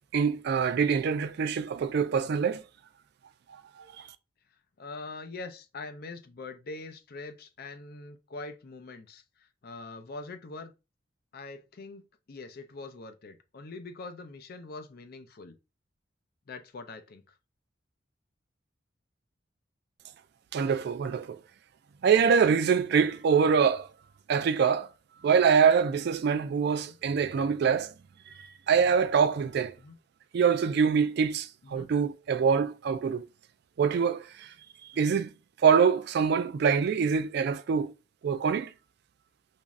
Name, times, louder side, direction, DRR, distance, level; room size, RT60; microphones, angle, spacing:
voice 1, 0.1-2.6 4.0-4.1 20.5-21.4 22.0-23.9 24.3-24.9 25.2-27.9 28.4-29.7 30.3-33.3 33.8-34.5 34.9-35.3 35.6-37.9 38.2-38.7, right 6 dB, 60° right, 0.3 m, -24 dB
voice 2, 4.8-10.7 11.3-12.0 12.3-15.6 16.5-17.2 26.8-27.0 29.8-30.0 31.6-31.9 34.9-35.2, left 3 dB, 55° left, 0.5 m, -43 dB
3.0 x 2.6 x 3.5 m
head